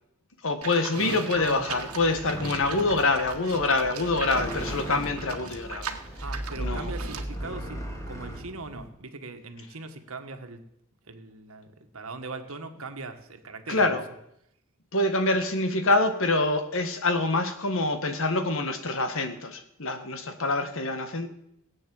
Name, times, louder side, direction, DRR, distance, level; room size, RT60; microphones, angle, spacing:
voice 1, 0.4-6.0 6.6-6.9 13.7-14.0 14.9-21.3, left 2 dB, 65° left, 8 dB, 1.6 m, -26 dB
Livestock farm animals working animals, 0.6-7.3, right 6 dB, 90° right, 1.5 m, -40 dB
voice 2, 0.9-1.6 6.2-10.6 11.1-13.9, right 3 dB, 65° right, 7 dB, 1.6 m, -40 dB
sound 1, 1.3-8.9, right 1 dB, 15° left, 2.5 m, -37 dB
17.5 x 8.6 x 7.8 m, 0.79 s
head